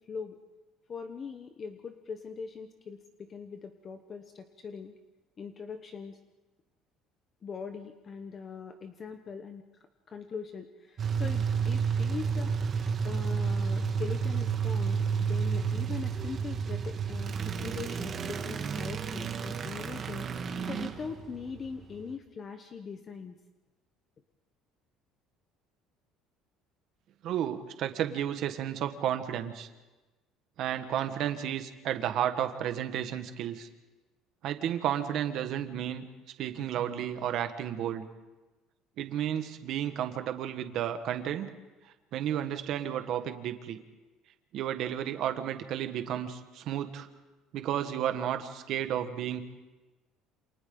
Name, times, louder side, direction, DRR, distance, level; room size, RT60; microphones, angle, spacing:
voice 1, 0.9-4.9 5.4-6.2 7.4-9.6 10.1-12.5 13.0-20.3 20.6-23.3, left 5 dB, 30° left, 7 dB, 1.0 m, -41 dB
sound 1, 11.0-22.1, right 6 dB, 30° right, 1.6 m, -31 dB
voice 2, 27.2-29.7 30.6-33.7 34.4-36.0 36.4-38.0 39.0-41.5 42.1-43.8 44.5-47.1 47.5-49.4, right 10 dB, 50° right, 8 dB, 1.5 m, -32 dB
28.5 x 27.5 x 3.9 m, 1.1 s
cardioid pair, 155°, 0 cm